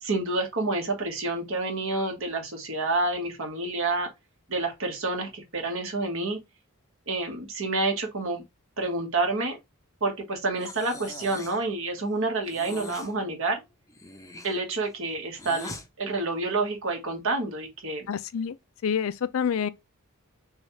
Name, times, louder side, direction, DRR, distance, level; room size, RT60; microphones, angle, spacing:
voice 1, 0.0-4.1 4.5-6.4 7.1-8.4 8.8-9.6 10.0-13.6 14.4-18.1, right 2 dB, 65° right, 1.5 m, -28 dB
Breathing, 10.6-11.7 12.4-13.1 13.9-15.9, left 2 dB, 15° left, 0.6 m, -42 dB
voice 2, 18.1-18.6 18.8-19.7, left 7 dB, 65° left, 0.4 m, -27 dB
6.3 x 2.4 x 3.1 m
head